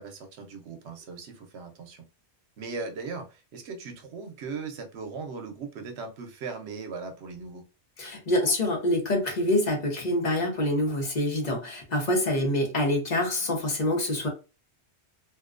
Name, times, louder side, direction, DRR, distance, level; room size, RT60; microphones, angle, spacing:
voice 1, 0.0-2.0 2.6-7.6, right 4 dB, 75° right, 0.9 m, -38 dB
voice 2, 8.0-14.3, left 1 dB, 40° left, 0.8 m, -26 dB
2.6 x 2.1 x 2.4 m
omnidirectional pair, 1.2 m